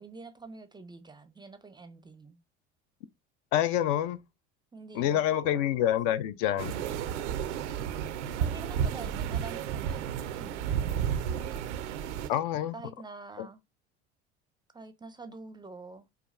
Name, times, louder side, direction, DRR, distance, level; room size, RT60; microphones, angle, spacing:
voice 1, 0.0-2.4 4.7-5.6 6.5-7.6 8.4-11.0 12.2-12.3 12.7-13.6 14.7-16.1, right 3 dB, 15° right, 0.5 m, -47 dB
voice 2, 3.5-4.2 4.9-6.8 12.3-12.7 13.4-13.5, left 11 dB, 60° left, 0.5 m, -27 dB
sound 1, 6.6-12.3, right 8 dB, 80° right, 0.5 m, -32 dB
5.0 x 2.3 x 2.4 m
hypercardioid pair, 75°, 34 cm